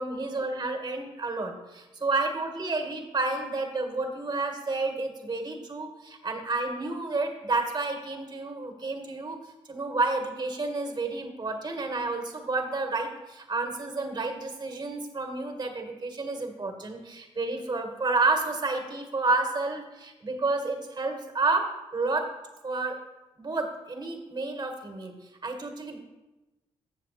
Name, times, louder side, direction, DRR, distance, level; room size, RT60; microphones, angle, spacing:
voice 1, 0.0-9.4 9.7-22.3 22.6-23.0 23.3-25.1 25.4-26.0, right 3 dB, 35° right, 4 dB, 1.7 m, -30 dB
7.3 x 7.2 x 4.2 m, 1.1 s
supercardioid pair, 45°, 13 cm